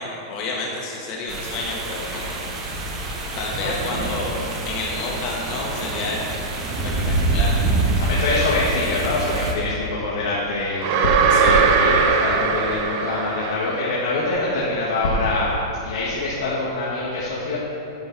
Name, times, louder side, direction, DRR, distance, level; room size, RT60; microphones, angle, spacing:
voice 1, 0.0-2.4 3.4-6.2 6.8-7.6 11.3-11.6, left 3 dB, 35° left, -3 dB, 1.9 m, -30 dB
sound 1, 1.3-9.5, right 2 dB, 20° right, 1.2 m, -26 dB
voice 2, 8.0-15.5 15.8-17.6, left 2 dB, 75° left, -6 dB, 1.8 m, -24 dB
sound 2, 10.8-13.9, right 5 dB, 40° right, 0.7 m, -19 dB
9.8 x 8.3 x 4.2 m, 3.0 s
supercardioid pair, 160°, 2 cm